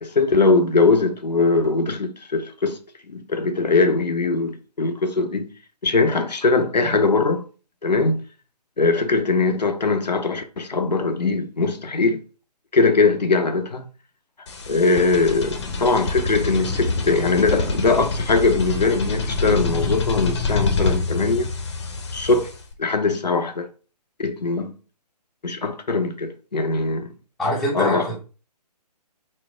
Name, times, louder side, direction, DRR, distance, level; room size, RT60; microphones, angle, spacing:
voice 1, 0.0-2.8 3.1-5.5 5.8-7.4 7.8-8.2 8.8-12.2 12.7-13.8 14.7-21.5 22.1-22.5 22.8-23.7 24.2-24.7 25.4-27.1 27.7-28.2, left 3 dB, 80° left, 0.6 m, -21 dB
sound 1, 14.5-22.7, left 3 dB, 45° left, 0.7 m, -26 dB
voice 2, 27.4-28.2, left 1 dB, ahead, 0.6 m, -24 dB
4.2 x 2.0 x 3.3 m
figure-of-eight pair, 135°, 21 cm